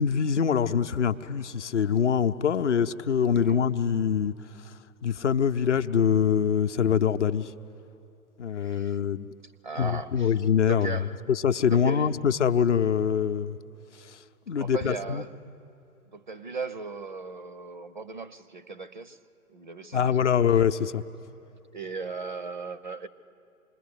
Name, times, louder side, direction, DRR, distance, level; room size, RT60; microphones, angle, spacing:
voice 1, 0.0-4.3 5.0-7.5 8.4-9.3 9.8-11.0 11.3-13.6 14.0-14.2 14.5-15.2 19.9-21.0, left 7 dB, 55° left, 0.7 m, -24 dB
voice 2, 3.3-3.6 8.5-9.0 9.4-10.3 10.6-11.2 11.6-12.2 14.6-15.4 16.1-19.2 19.5-20.3 21.7-23.1, right 4 dB, 35° right, 0.5 m, -37 dB
27.0 x 20.5 x 7.9 m
figure-of-eight pair, 125°, 44 cm